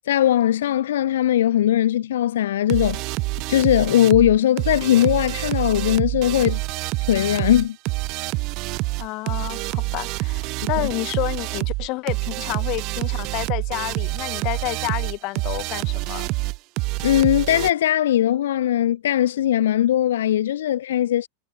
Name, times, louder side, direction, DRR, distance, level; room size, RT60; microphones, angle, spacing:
voice 1, 0.1-3.0 3.5-6.6 7.1-7.8 10.8-10.9 17.0-21.3, left 12 dB, 60° left, 0.4 m, -19 dB
sound 1, 2.7-17.7, right 24 dB, 40° right, 0.9 m, -27 dB
voice 2, 9.0-16.3, left 24 dB, 40° left, 1.4 m, -30 dB
figure-of-eight pair, 90°, 0 cm